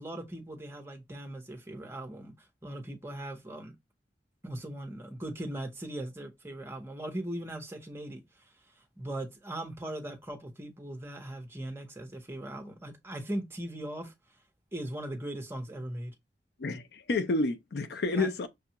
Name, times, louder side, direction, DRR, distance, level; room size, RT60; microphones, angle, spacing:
voice 1, 0.0-2.3 2.6-3.7 4.4-8.2 9.0-14.1 14.7-16.1 18.1-18.3, right 1 dB, 15° right, 0.8 m, -39 dB
voice 2, 16.6-18.5, left 3 dB, 65° left, 0.5 m, -30 dB
6.1 x 2.3 x 2.8 m
head